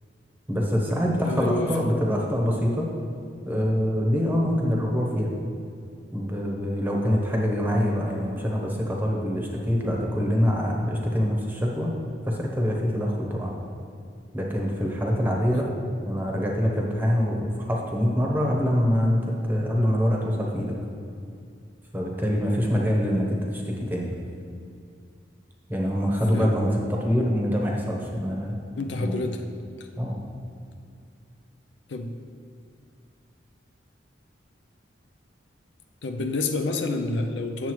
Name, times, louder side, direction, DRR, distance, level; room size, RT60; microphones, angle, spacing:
voice 1, 0.5-2.9 3.5-5.3 6.1-11.9 12.2-13.5 14.3-15.7 16.0-20.7 21.9-24.1 25.7-28.6 29.0-29.2 30.0-30.2, equal, 10° right, -1 dB, 0.9 m, -25 dB
voice 2, 1.2-1.7 15.5-15.7 26.3-26.5 28.8-29.5 29.8-29.9 31.9-32.1 36.0-37.7, left 3 dB, 75° left, 5 dB, 0.5 m, -28 dB
8.9 x 6.9 x 3.1 m, 2.4 s
head